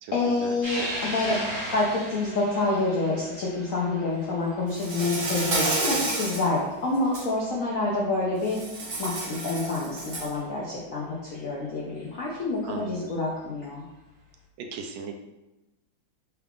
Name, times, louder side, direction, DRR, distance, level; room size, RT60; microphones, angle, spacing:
voice 1, 0.1-1.4 1.7-8.6 9.0-13.8, left 2 dB, 75° left, -5 dB, 0.7 m, -27 dB
sound 1, 0.6-7.3 7.7-7.8 9.1-9.2 11.3-11.4 12.8-13.1, equal, 20° right, 0.6 m, -37 dB
Insect, 4.7-6.5 6.9-7.2 8.5-10.4, right 2 dB, 70° right, 0.5 m, -30 dB
voice 2, 12.6-13.1 14.6-15.1, right 5 dB, 85° right, 4 dB, 1.4 m, -37 dB
4.5 x 2.4 x 3.4 m, 0.99 s
omnidirectional pair, 2.2 m